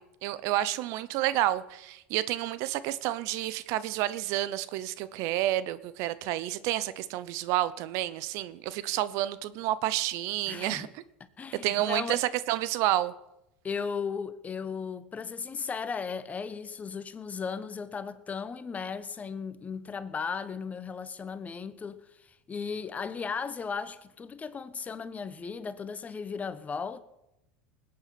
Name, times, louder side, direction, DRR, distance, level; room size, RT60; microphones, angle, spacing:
voice 1, 0.0-10.9 11.6-13.1, right 14 dB, 60° right, 0.8 m, -30 dB
voice 2, 10.5-10.9 11.4-12.2 13.6-27.0, left 5 dB, 25° left, 1.1 m, -36 dB
20.0 x 8.7 x 6.1 m
hypercardioid pair, 85°, 6 cm